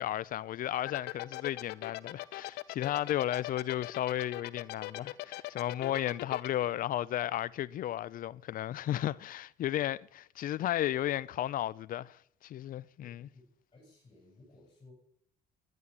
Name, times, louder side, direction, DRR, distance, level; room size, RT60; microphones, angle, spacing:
voice 1, 0.0-13.2, left 12 dB, 55° left, 0.5 m, -34 dB
sound 1, 0.9-6.5, left 17 dB, 85° left, 0.8 m, -39 dB
voice 2, 13.0-13.4 13.7-14.9, left 2 dB, 30° left, 7.0 m, -57 dB
11.0 x 11.0 x 9.8 m
cardioid pair, 110°, 17 cm